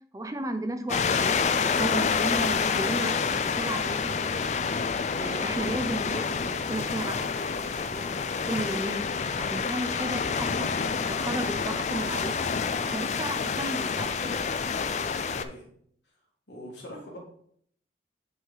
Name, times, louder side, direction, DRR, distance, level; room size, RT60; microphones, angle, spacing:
voice 1, 0.1-4.5 5.0-9.0 9.4-12.3 12.8-14.4, right 1 dB, 20° right, 9 dB, 0.5 m, -35 dB
sound 1, 0.9-15.4, left 5 dB, 40° left, 0.4 m, -28 dB
voice 2, 5.1-5.4 15.2-15.7 16.5-17.2, left 1 dB, 80° left, -3 dB, 1.9 m, -43 dB
6.0 x 5.4 x 3.9 m, 0.64 s
head